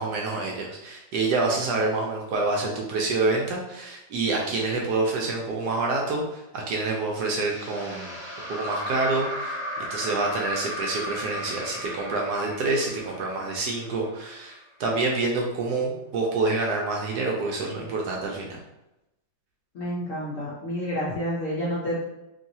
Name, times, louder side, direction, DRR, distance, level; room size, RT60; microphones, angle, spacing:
voice 1, 0.0-8.2 8.5-18.6, right 3 dB, 70° right, -1 dB, 1.0 m, -27 dB
sound 1, 7.2-14.4, equal, 30° right, 0.9 m, -35 dB
voice 2, 19.7-22.0, equal, 65° left, -6 dB, 0.8 m, -29 dB
3.0 x 2.8 x 2.6 m, 0.91 s
omnidirectional pair, 2.0 m